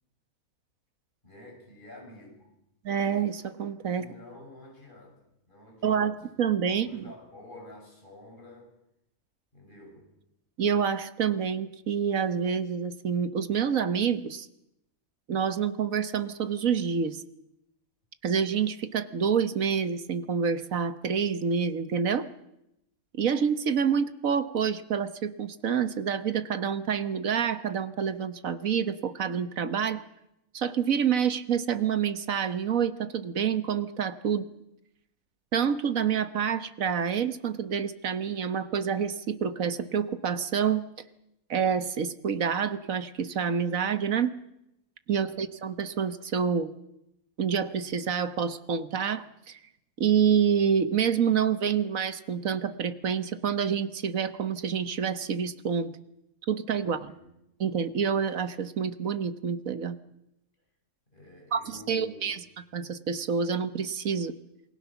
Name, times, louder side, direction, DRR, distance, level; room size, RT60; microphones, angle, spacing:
voice 1, 1.2-2.5 3.9-6.1 6.7-8.7 9.5-10.1 45.1-45.5 56.8-57.3 61.1-62.3, left 1 dB, 35° left, 1 dB, 6.6 m, -49 dB
voice 2, 2.8-4.0 5.8-7.0 10.6-14.5 15.3-17.2 18.2-22.3 23.1-30.0 30.5-34.5 35.5-40.8 41.5-44.3 45.1-46.7 47.4-49.6 50.0-55.9 56.5-57.1 57.6-60.0 61.5-62.4 62.7-64.3, right 7 dB, 65° right, 12 dB, 1.6 m, -27 dB
28.0 x 20.5 x 7.1 m, 0.84 s
omnidirectional pair, 1.5 m